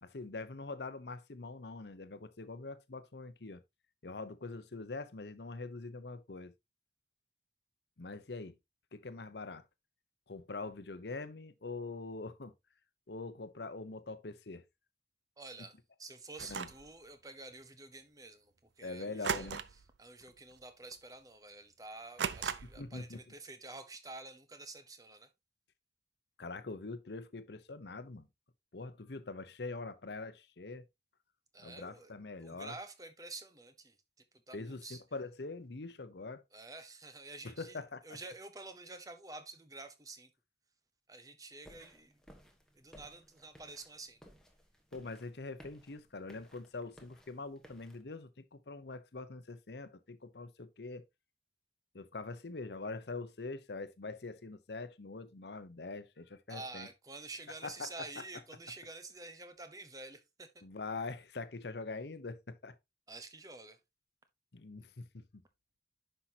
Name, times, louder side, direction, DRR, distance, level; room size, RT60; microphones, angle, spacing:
voice 1, 0.0-3.6 4.0-6.5 8.0-8.5 8.9-9.6 10.3-12.5 13.1-14.6 16.5-16.7 18.8-19.6 22.8-23.2 26.4-28.3 28.7-30.8 31.6-32.8 34.5-36.4 37.4-38.2 44.9-51.0 51.9-56.9 57.5-57.9 60.6-62.8 64.5-65.2, left 3 dB, 75° left, 0.8 m, -44 dB
voice 2, 15.4-15.7 16.0-19.6 20.0-25.3 31.5-33.9 34.5-35.0 36.5-37.8 38.0-40.3 41.1-42.1 42.8-44.2 56.5-60.5 63.1-63.8, right 3 dB, 20° right, 0.9 m, -49 dB
sound 1, 16.4-16.9 19.2-19.9 20.2-20.5 20.9-21.0 22.2-22.9, right 7 dB, 85° right, 0.6 m, -37 dB
sound 2, 41.6-48.0, equal, 5° left, 1.3 m, -59 dB
10.0 x 5.7 x 2.8 m
head